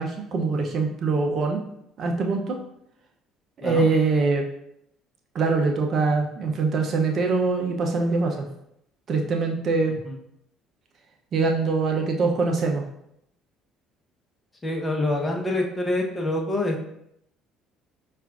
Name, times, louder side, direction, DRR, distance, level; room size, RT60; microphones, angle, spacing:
voice 1, 0.0-1.6 2.0-2.6 3.6-4.5 5.3-8.5 9.1-10.0 11.3-12.8, right 4 dB, 50° right, 3 dB, 0.6 m, -23 dB
voice 2, 14.6-16.9, left 1 dB, 20° left, 1 dB, 0.8 m, -26 dB
5.6 x 2.4 x 2.4 m, 0.76 s
hypercardioid pair, 65°, 0 cm